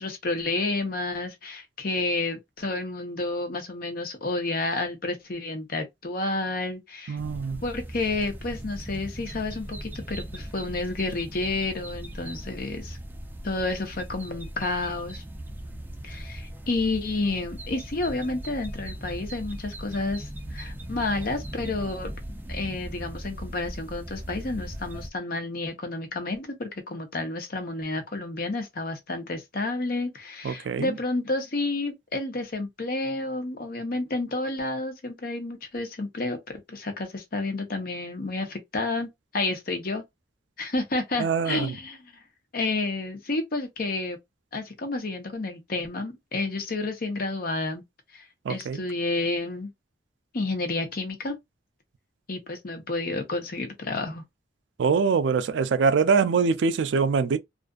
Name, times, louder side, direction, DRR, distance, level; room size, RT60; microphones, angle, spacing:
voice 1, 0.0-7.2 7.6-13.0 13.4-15.2 16.0-22.1 22.5-40.0 40.6-42.1 42.5-44.2 44.5-47.8 48.1-49.7 50.3-51.4 52.3-54.2, left 2 dB, 55° left, 0.8 m, -30 dB
voice 2, 7.1-7.6 30.4-30.9 41.2-41.7 48.5-48.8 54.8-57.4, right 5 dB, 90° right, 0.4 m, -24 dB
sound 1, 7.2-25.1, right 1 dB, 10° right, 0.4 m, -39 dB
2.5 x 2.4 x 2.3 m
head